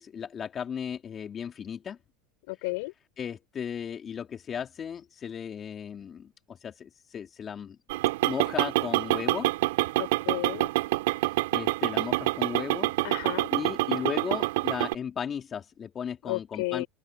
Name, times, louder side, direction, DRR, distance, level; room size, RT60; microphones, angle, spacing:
voice 1, 0.0-2.0 3.2-7.8 8.2-9.5 11.2-12.9 13.5-16.8, left 7 dB, 30° left, 2.7 m, -36 dB
voice 2, 2.5-2.9 10.0-10.7 13.0-13.5 16.2-16.9, left 27 dB, 70° left, 5.8 m, -33 dB
sound 1, 7.9-14.9, right 19 dB, 75° right, 3.8 m, -27 dB
open air
supercardioid pair, 105°, 0 cm